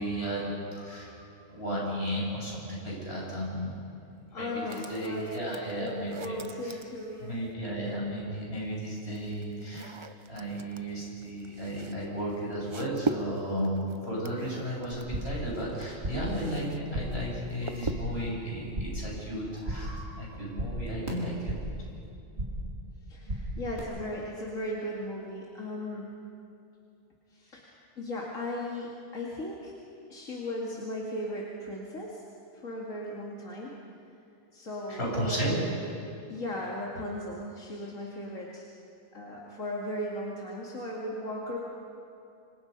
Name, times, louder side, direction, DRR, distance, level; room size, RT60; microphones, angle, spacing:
voice 1, 0.0-3.8 4.1-6.4 6.6-6.8 7.2-9.9 10.3-21.5 34.9-35.5, equal, 50° left, -4 dB, 8.0 m, -34 dB
voice 2, 4.3-7.4 23.1-26.2 27.3-29.7 30.1-32.2 32.5-33.8 34.5-35.7 36.3-38.7 39.1-41.6, left 1 dB, 80° left, -3 dB, 2.7 m, -37 dB
sound 1, 4.7-7.5 8.5-16.8 17.1-18.3, right 3 dB, 30° right, 0.6 m, -41 dB
sound 2, 14.9-15.5 15.7-16.4 16.6-17.3 17.6-18.2 18.5-19.1 19.4-20.0 20.3-21.8 22.1-22.7 23.0-23.8, right 1 dB, 55° right, 4.4 m, -36 dB
27.5 x 26.0 x 5.5 m, 2.7 s
omnidirectional pair, 1.3 m